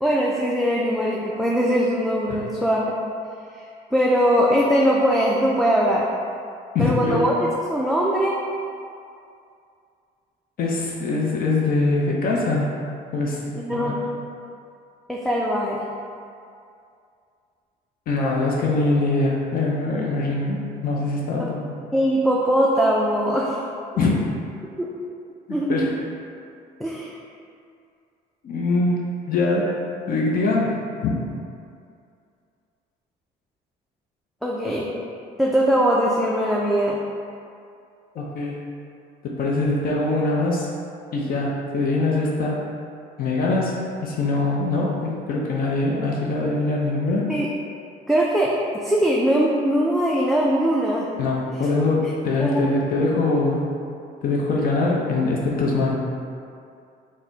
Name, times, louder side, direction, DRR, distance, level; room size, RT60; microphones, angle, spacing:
voice 1, 0.0-2.9 3.9-6.0 6.8-8.4 13.5-14.0 15.1-15.8 21.4-21.5 21.9-23.6 24.8-24.9 25.5-25.9 26.8-27.1 34.4-34.9 35.4-37.0 47.3-47.5 48.1-48.5 48.8-51.0 52.4-52.7, equal, ahead, -4 dB, 0.4 m, -21 dB
voice 2, 6.7-7.2 10.6-12.7 13.1-13.4 13.7-13.9 18.1-21.8 24.0-24.1 25.7-25.9 28.4-31.1 38.1-38.6 39.2-40.7 41.1-42.7 43.2-47.3 51.2-53.7 54.2-56.0, left 2 dB, 60° left, -3 dB, 0.6 m, -23 dB
4.2 x 2.1 x 4.5 m, 2.4 s
cardioid pair, 110°, 17 cm